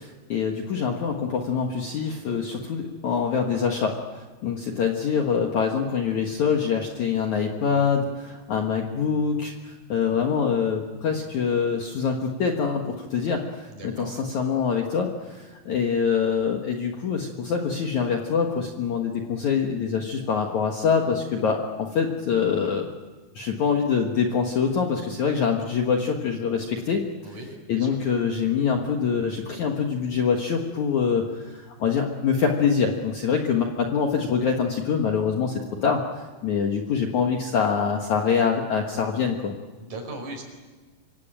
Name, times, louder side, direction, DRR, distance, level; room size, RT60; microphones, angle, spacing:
voice 1, 0.0-22.9 23.4-27.0 27.7-39.5, left 6 dB, 60° left, 2 dB, 2.3 m, -25 dB
voice 2, 13.7-14.2 27.2-27.5 27.7-27.9 39.8-40.4, right 2 dB, 45° right, 3 dB, 6.4 m, -38 dB
25.5 x 24.5 x 9.0 m, 1.3 s
omnidirectional pair, 4.9 m